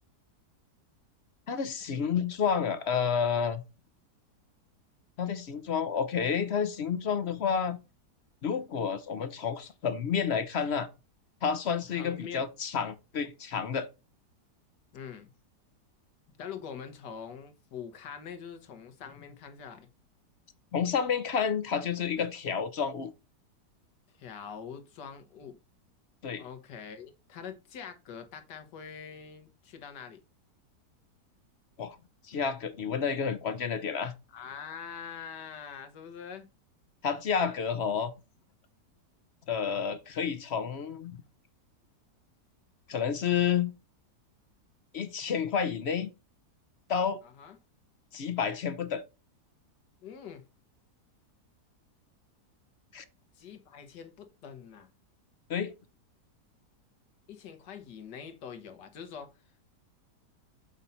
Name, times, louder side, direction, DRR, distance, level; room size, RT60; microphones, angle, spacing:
voice 1, 1.5-3.6 5.2-7.8 8.4-10.9 11.4-13.9 20.7-23.1 26.2-26.4 31.8-32.0 32.2-34.1 37.0-38.1 39.5-41.2 42.9-43.7 44.9-46.1 46.9-47.2 48.1-49.0 52.9-53.0 55.5-55.7, left 7 dB, 55° left, 0.7 m, -30 dB
voice 2, 11.9-12.5 14.9-15.3 16.3-19.9 24.2-25.6 26.4-30.2 34.3-36.5 47.2-47.6 50.0-50.5 53.4-54.9 57.3-59.3, left 7 dB, 85° left, 1.8 m, -44 dB
7.2 x 5.4 x 4.2 m
omnidirectional pair, 1.8 m